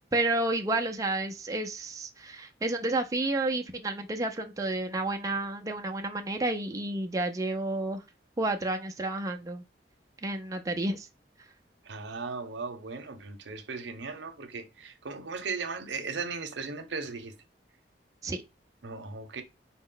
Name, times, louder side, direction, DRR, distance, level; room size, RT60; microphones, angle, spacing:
voice 1, 0.1-8.0 8.4-9.6 10.2-11.1 18.2-18.4, right 2 dB, 20° right, 0.4 m, -30 dB
voice 2, 11.8-17.3 18.8-19.4, right 4 dB, 85° right, 0.7 m, -37 dB
4.3 x 2.0 x 3.7 m
head